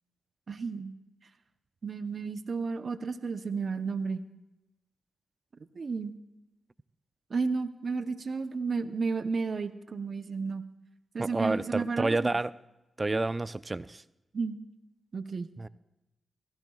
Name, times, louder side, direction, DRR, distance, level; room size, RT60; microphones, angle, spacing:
voice 1, 0.5-0.9 1.8-4.2 5.7-6.1 7.3-10.6 11.1-12.2 14.3-14.6 15.1-15.5, right 4 dB, 60° right, 10 dB, 0.8 m, -32 dB
voice 2, 11.2-12.5 13.0-14.0 15.6-15.7, right 2 dB, 30° right, 16 dB, 0.5 m, -29 dB
25.0 x 16.0 x 2.4 m, 0.96 s
cardioid pair, 50°, 0 cm